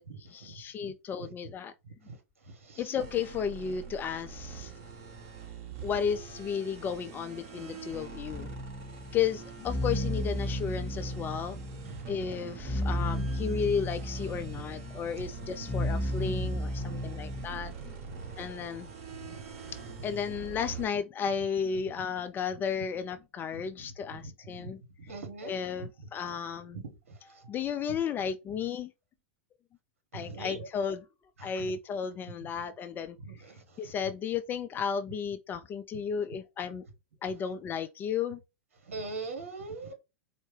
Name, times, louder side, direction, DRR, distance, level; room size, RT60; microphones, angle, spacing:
voice 1, 0.0-1.7 2.8-4.7 5.8-8.5 9.1-11.6 12.1-17.9 18.4-18.9 20.0-25.1 25.4-26.8 27.2-28.9 30.1-31.1 31.4-33.2 33.8-36.8 37.2-38.4, left 7 dB, 25° left, 0.4 m, -33 dB
sound 1, 3.0-20.9, right 6 dB, 45° right, 1.5 m, -45 dB
sound 2, 8.3-17.4, equal, 5° left, 1.1 m, -34 dB
voice 2, 25.1-25.5 30.1-30.6 33.3-33.4 38.9-39.9, right 3 dB, 80° right, 1.1 m, -39 dB
4.3 x 2.1 x 3.1 m
hypercardioid pair, 105°, 7 cm